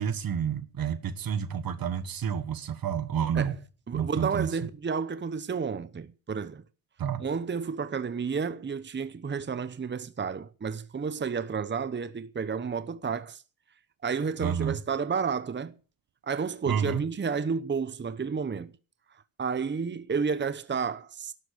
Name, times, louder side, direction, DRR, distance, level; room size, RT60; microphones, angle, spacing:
voice 1, 0.0-3.6 3.9-4.7 7.0-7.3 14.4-14.8 16.7-17.0, right 8 dB, 80° right, 1.6 m, -29 dB
voice 2, 3.9-6.6 7.2-13.4 14.0-15.7 16.2-18.7 19.4-21.3, right 5 dB, 30° right, 0.9 m, -31 dB
12.5 x 12.0 x 6.7 m
wide cardioid pair, 110°, 35 cm